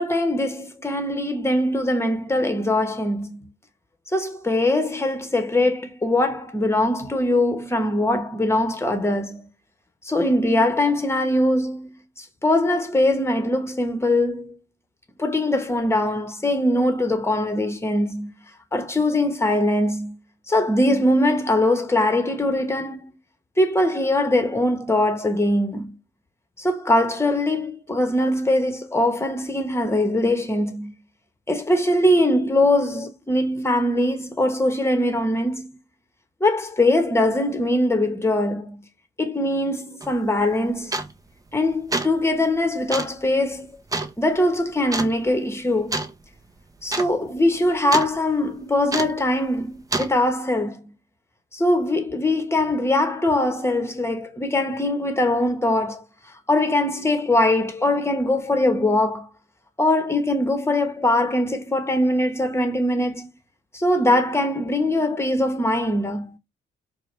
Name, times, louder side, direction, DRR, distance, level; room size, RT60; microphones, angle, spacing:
voice 1, 0.0-3.5 4.1-9.5 10.0-11.9 12.2-14.6 15.2-18.3 18.7-20.1 20.5-23.2 23.6-26.0 26.6-30.9 31.5-35.7 36.4-38.8 39.2-40.9 41.5-43.7 44.2-46.0 46.8-50.8 51.5-56.0 56.5-59.3 59.8-63.3 63.7-66.3, left 1 dB, 15° left, 1.1 m, -22 dB
sound 1, 40.0-40.1 40.9-41.3 41.7-42.2 42.9-43.2 43.9-44.1 44.9-45.1 45.9-46.1 46.4-46.5 46.8-47.1 47.4-48.1 48.9-49.2 49.9-50.1, right 2 dB, 15° right, 0.7 m, -27 dB
4.6 x 2.3 x 3.2 m
cardioid pair, 90°, 20 cm